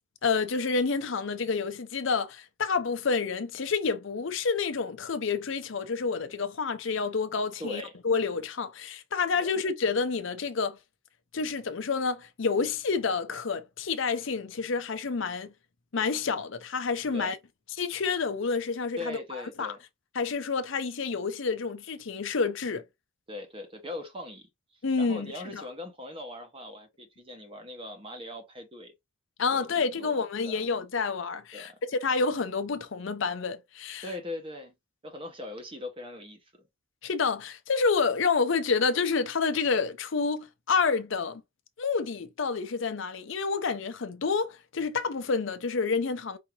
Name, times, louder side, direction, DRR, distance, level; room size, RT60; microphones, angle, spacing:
voice 1, 0.2-10.8 11.3-15.5 15.9-17.4 17.8-19.2 19.6-19.8 20.1-22.8 24.8-25.7 29.4-34.0 37.0-41.4 41.8-46.4, left 5 dB, 60° left, 0.6 m, -29 dB
voice 2, 7.6-8.0 9.4-9.5 17.1-17.3 19.0-19.8 23.3-24.5 25.0-28.9 29.5-30.6 31.5-31.8 34.0-34.7 35.0-36.5, left 2 dB, 25° right, 1.0 m, -40 dB
4.9 x 2.8 x 2.9 m
head